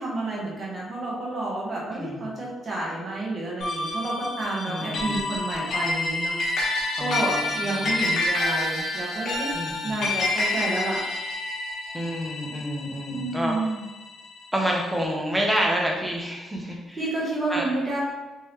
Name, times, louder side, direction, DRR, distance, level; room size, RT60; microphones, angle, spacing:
voice 1, 0.0-9.5 9.8-11.0 13.1-13.9 16.6-18.0, right 2 dB, 40° right, -5 dB, 1.4 m, -30 dB
voice 2, 1.9-2.3 4.7-5.3 7.0-7.9 9.5-10.1 11.9-13.5 14.5-17.0 17.5-17.7, equal, 10° right, -1 dB, 0.9 m, -28 dB
sound 1, 3.6-14.2, left 2 dB, 70° left, 1.1 m, -28 dB
3.6 x 2.8 x 3.3 m, 1.1 s
cardioid pair, 90°, 0 cm